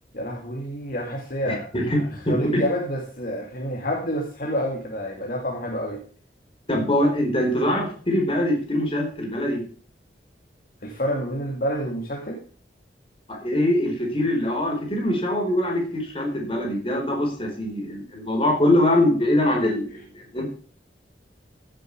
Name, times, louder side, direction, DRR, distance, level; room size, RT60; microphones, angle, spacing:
voice 1, 0.1-6.0 10.8-12.4, equal, 50° left, -1 dB, 2.4 m, -28 dB
voice 2, 1.5-2.0 2.3-2.6 6.7-9.6 13.3-20.4, left 1 dB, 30° left, 1 dB, 4.4 m, -23 dB
16.0 x 7.7 x 4.8 m, 0.42 s
head